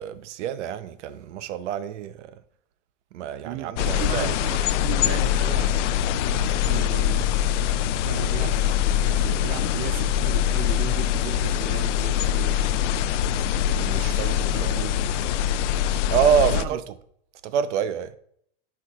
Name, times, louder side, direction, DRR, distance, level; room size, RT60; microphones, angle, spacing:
voice 1, 0.0-2.4 3.1-4.4 13.7-14.3 14.6-14.8 16.1-16.8 17.4-18.1, right 8 dB, 80° right, 0.7 m, -26 dB
voice 2, 3.4-5.9 6.3-7.3 8.1-8.8 9.1-12.6 14.2-15.1 16.5-16.8, right 12 dB, 40° right, 0.4 m, -36 dB
sound 1, 3.8-16.7, left 10 dB, 90° left, 0.5 m, -23 dB
sound 2, 11.2-15.3, left 12 dB, 40° left, 1.0 m, -50 dB
12.0 x 4.7 x 2.4 m
supercardioid pair, 150°, 35 cm